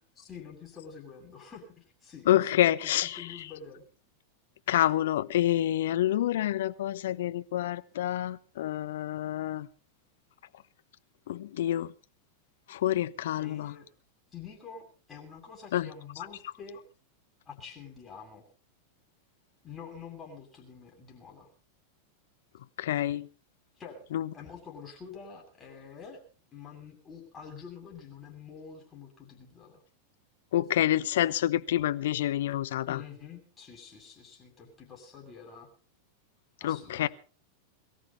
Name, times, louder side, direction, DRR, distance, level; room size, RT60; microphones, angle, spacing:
voice 1, 0.2-3.8 13.4-13.9 14.3-16.8 17.5-18.5 19.6-21.5 23.8-24.0 24.3-26.2 26.5-29.8 32.9-35.7 36.6-37.1, left 6 dB, 20° left, 7.7 m, -47 dB
voice 2, 2.3-3.2 4.7-9.7 11.3-11.9 12.7-13.7 15.7-15.9 22.8-23.3 24.1-24.3 30.5-33.0 36.6-37.1, left 13 dB, 60° left, 0.7 m, -27 dB
22.5 x 13.5 x 4.2 m
figure-of-eight pair, 90°, 0 cm